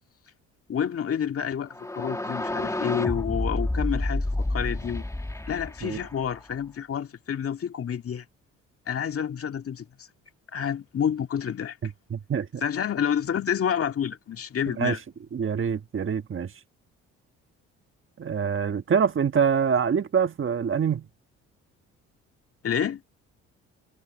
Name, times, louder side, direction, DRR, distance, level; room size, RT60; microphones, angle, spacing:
voice 1, 0.7-5.0 5.5-8.3 8.9-9.9 10.5-11.8 12.6-15.0 22.6-23.0, left 8 dB, 45° left, 2.1 m, -29 dB
sound 1, 1.7-6.5, left 1 dB, 10° left, 1.7 m, -30 dB
voice 2, 11.8-12.6 14.8-15.0 15.3-16.5 18.2-21.1, right 7 dB, 40° right, 1.5 m, -25 dB
supercardioid pair, 65°, 31 cm